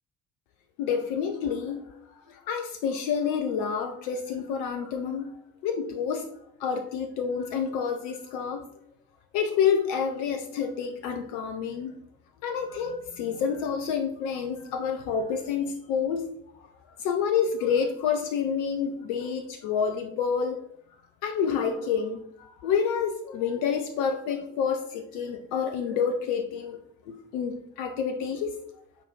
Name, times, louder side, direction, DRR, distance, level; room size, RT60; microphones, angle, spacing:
voice 1, 0.8-5.4 5.6-6.3 6.6-8.7 9.3-12.0 12.4-16.3 17.0-20.6 21.2-26.8 27.1-28.6, left 7 dB, 65° left, 6 dB, 0.8 m, -28 dB
8.2 x 4.6 x 5.4 m, 0.71 s
figure-of-eight pair, 45°, 39 cm